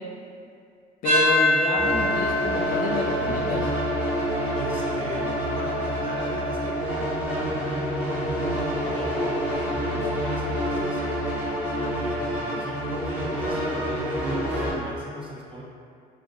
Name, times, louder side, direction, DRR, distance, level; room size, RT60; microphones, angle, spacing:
voice 1, 1.0-3.7, left 3 dB, 55° left, 0 dB, 0.4 m, -29 dB
sound 1, 1.0-9.5, equal, 55° right, 0.8 m, -28 dB
sound 2, 1.7-14.7, equal, 10° right, 1.0 m, -28 dB
voice 2, 4.5-6.8 7.4-11.3 11.9-15.6, right 1 dB, 30° right, -3 dB, 0.6 m, -38 dB
2.4 x 2.4 x 4.1 m, 2.3 s
cardioid pair, 110°, 17 cm